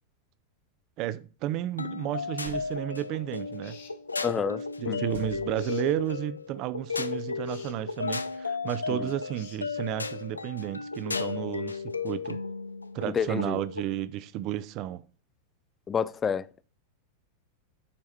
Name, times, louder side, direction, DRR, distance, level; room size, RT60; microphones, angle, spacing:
voice 1, 1.0-3.8 4.4-4.5 4.8-12.4 12.9-15.0, right 13 dB, 40° right, 0.6 m, -32 dB
sound 1, 1.8-13.9, left 4 dB, 80° left, 0.5 m, -34 dB
sound 2, 2.4-3.1 5.1-6.1, right 5 dB, 65° right, 1.4 m, -46 dB
sound 3, 3.6-4.0 5.5-5.9 7.4-7.8 9.3-9.6, left 6 dB, 65° left, 1.9 m, -51 dB
voice 2, 4.2-5.0 8.9-9.1 13.1-13.6 15.9-16.6, left 7 dB, 20° left, 0.4 m, -30 dB
9.5 x 4.8 x 4.1 m
figure-of-eight pair, 90°, 0 cm